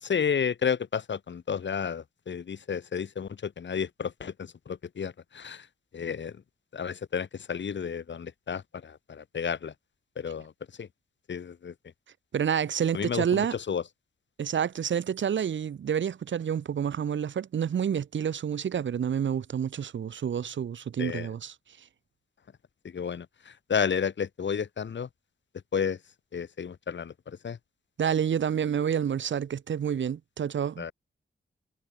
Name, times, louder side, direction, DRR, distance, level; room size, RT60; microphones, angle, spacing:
voice 1, 0.0-5.7 5.9-6.4 6.7-9.7 10.2-10.5 10.8-10.9 11.3-11.7 12.9-13.8 21.0-21.3 22.8-25.1 25.7-26.0 26.3-27.6 30.8-30.9, left 7 dB, 70° left, 1.9 m, -32 dB
voice 2, 12.3-13.6 14.4-21.5 28.0-30.9, right 8 dB, 80° right, 0.9 m, -28 dB
wide cardioid pair, 135°, 19 cm